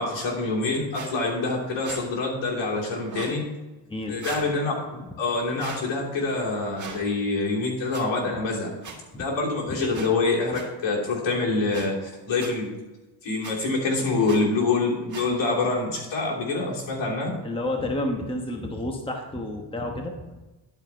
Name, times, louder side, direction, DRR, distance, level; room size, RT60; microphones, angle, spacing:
voice 1, 0.0-3.5 4.1-8.7 9.1-12.8 13.2-17.3, left 3 dB, 70° left, -3 dB, 3.1 m, -26 dB
sound 1, 0.9-1.1 1.8-2.0 3.1-3.4 4.2-4.5 5.6-5.8 6.8-7.0 7.9-8.0 8.8-9.0 9.9-10.1 10.5-10.7 11.7-11.9 12.4-12.5 13.4-13.5 14.3-14.4 15.1-15.3, right 5 dB, 40° right, 1.9 m, -37 dB
voice 2, 17.4-20.5, left 1 dB, 10° left, 2 dB, 1.1 m, -30 dB
11.5 x 4.9 x 4.5 m, 1.1 s
cardioid pair, 105°, 45 cm